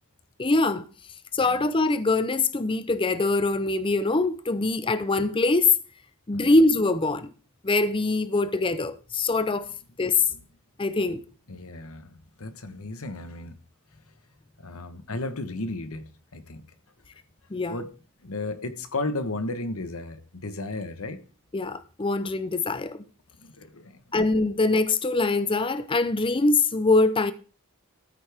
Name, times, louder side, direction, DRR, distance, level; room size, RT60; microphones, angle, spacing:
voice 1, 0.4-0.9 1.3-5.7 6.3-7.3 7.6-9.7 10.0-10.3 10.8-11.2 17.5-17.8 21.5-23.0 24.1-27.3, left 3 dB, 25° left, 0.6 m, -23 dB
voice 2, 10.0-10.4 11.5-13.6 14.6-16.6 17.7-17.9 18.2-21.2 23.4-24.0, left 2 dB, 70° left, 1.2 m, -34 dB
14.0 x 8.2 x 3.5 m
head